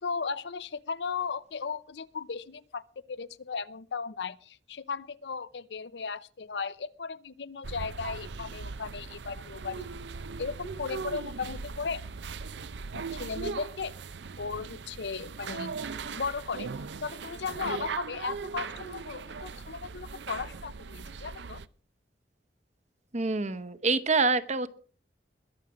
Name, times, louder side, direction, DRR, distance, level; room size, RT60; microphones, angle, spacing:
voice 1, 0.0-9.9 10.4-12.0 12.9-13.9 14.4-15.7 16.2-16.7 17.0-21.6, left 5 dB, 75° left, 0.6 m, -36 dB
sound 1, 7.6-21.7, right 5 dB, 85° right, 0.6 m, -39 dB
voice 2, 23.1-24.7, right 3 dB, 40° right, 0.9 m, -26 dB
21.5 x 7.4 x 5.0 m
head